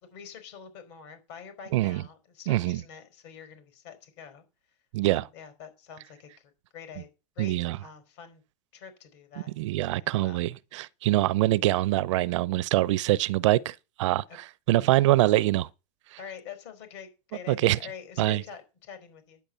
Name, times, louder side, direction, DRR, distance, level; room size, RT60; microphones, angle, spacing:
voice 1, 0.0-4.4 5.1-6.3 6.7-7.1 7.4-8.4 8.7-10.4 16.2-19.4, left 7 dB, 50° left, 4.6 m, -46 dB
voice 2, 1.7-2.0 2.5-2.8 4.9-5.3 7.4-7.8 9.6-15.7 17.5-17.8 18.2-18.4, right 17 dB, 60° right, 0.6 m, -24 dB
10.0 x 8.7 x 6.8 m
supercardioid pair, 170°, 18 cm